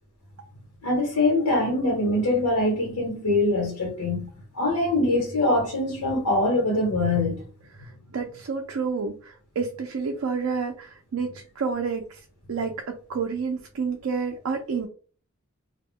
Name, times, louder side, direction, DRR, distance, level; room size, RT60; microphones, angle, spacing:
voice 1, 0.8-4.3 4.5-7.4, left 2 dB, 85° left, 1.0 m, -23 dB
voice 2, 7.8-14.9, right 5 dB, 65° right, 0.4 m, -30 dB
2.2 x 2.1 x 3.5 m
head